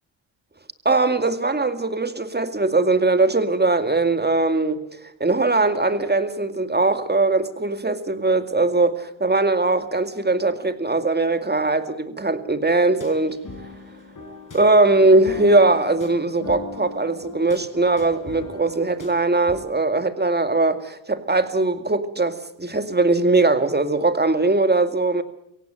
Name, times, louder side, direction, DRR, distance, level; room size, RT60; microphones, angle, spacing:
voice 1, 0.9-4.8 5.2-13.4 14.5-25.2, right 2 dB, 20° right, 9 dB, 2.1 m, -20 dB
sound 1, 13.0-19.6, left 3 dB, 40° left, 4.9 m, -39 dB
23.5 x 17.5 x 7.7 m, 0.77 s
cardioid pair, 75°, 47 cm